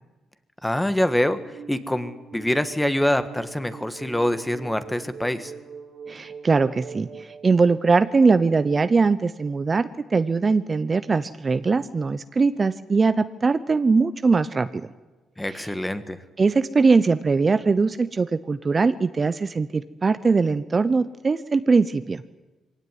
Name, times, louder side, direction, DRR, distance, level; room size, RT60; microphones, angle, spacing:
voice 1, 0.6-1.4 1.7-5.5 15.4-16.2, left 1 dB, 10° left, 11 dB, 1.7 m, -25 dB
sound 1, 1.3-7.5, right 5 dB, 60° right, 2.9 m, -42 dB
voice 2, 6.1-14.9 15.4-15.7 16.4-22.2, right 4 dB, 30° right, 13 dB, 0.8 m, -21 dB
22.5 x 17.5 x 9.5 m, 1.2 s
cardioid pair, 90°, 0 cm